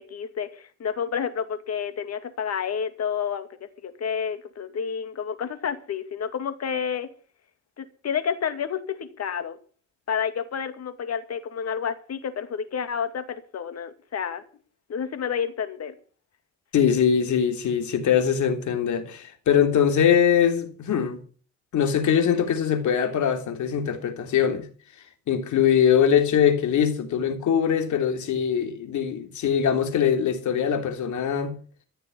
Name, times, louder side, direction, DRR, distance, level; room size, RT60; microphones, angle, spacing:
voice 1, 0.0-7.1 7.8-9.6 10.1-14.4 14.9-15.9, left 7 dB, 55° left, 2.4 m, -30 dB
voice 2, 16.7-21.2 21.7-24.7 25.3-31.5, left 8 dB, 75° left, 3.2 m, -22 dB
15.0 x 6.8 x 9.7 m
cardioid pair, 90°, 30 cm